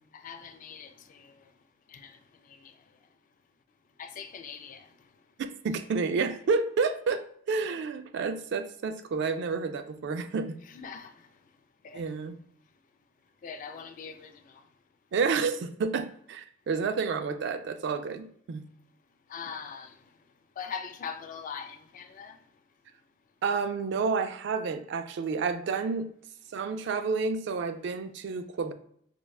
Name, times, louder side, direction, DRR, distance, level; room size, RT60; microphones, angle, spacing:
voice 1, 0.1-1.3 1.9-2.2 2.5-2.7 4.0-4.9 10.8-11.2 11.8-12.0 13.4-14.6 19.3-20.0 20.6-22.4, left 6 dB, 45° left, 0.3 m, -41 dB
voice 2, 5.6-10.6 11.9-12.4 15.1-18.7 23.4-26.1 26.5-28.7, right 4 dB, 65° right, 0.3 m, -30 dB
4.5 x 2.2 x 2.3 m
head